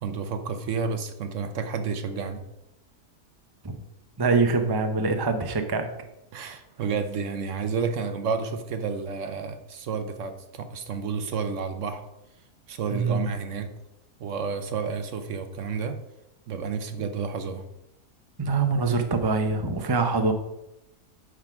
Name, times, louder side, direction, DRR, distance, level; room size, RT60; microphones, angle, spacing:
voice 1, 0.0-2.4 6.3-12.0 12.7-13.7 14.2-16.0 16.5-17.6, right 5 dB, 60° right, 8 dB, 1.0 m, -30 dB
voice 2, 4.2-5.9 12.9-13.2 18.4-20.3, right 4 dB, 25° right, 6 dB, 0.5 m, -24 dB
9.6 x 3.7 x 5.9 m, 0.87 s
omnidirectional pair, 1.5 m